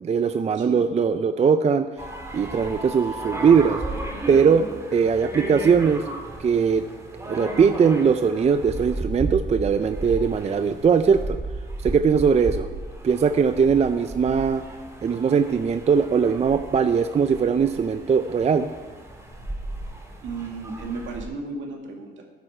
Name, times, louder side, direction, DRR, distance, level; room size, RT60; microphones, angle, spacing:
voice 1, 0.0-1.9 2.3-3.8 4.3-4.6 4.9-6.0 6.4-6.8 7.3-11.4 11.8-12.7 13.0-14.6 15.0-18.7, right 6 dB, 35° right, 10 dB, 0.5 m, -20 dB
sound 1, 2.0-21.2, right 2 dB, 15° right, 2.2 m, -35 dB
voice 2, 20.2-22.2, right 3 dB, 70° right, 1 dB, 2.2 m, -34 dB
13.0 x 9.4 x 4.4 m, 1.4 s
cardioid pair, 90°, 20 cm